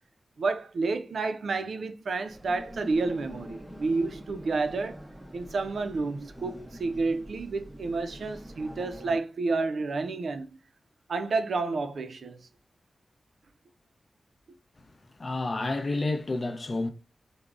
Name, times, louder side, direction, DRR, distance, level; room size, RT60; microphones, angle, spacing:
voice 1, 0.4-5.0 5.3-10.6 11.1-12.4, right 3 dB, 80° right, 0.3 m, -30 dB
sound 1, 2.2-9.2, equal, 5° right, 0.5 m, -45 dB
voice 2, 15.2-16.9, left 2 dB, 45° left, 0.4 m, -30 dB
3.4 x 2.0 x 2.4 m
wide cardioid pair, 70°, 0 cm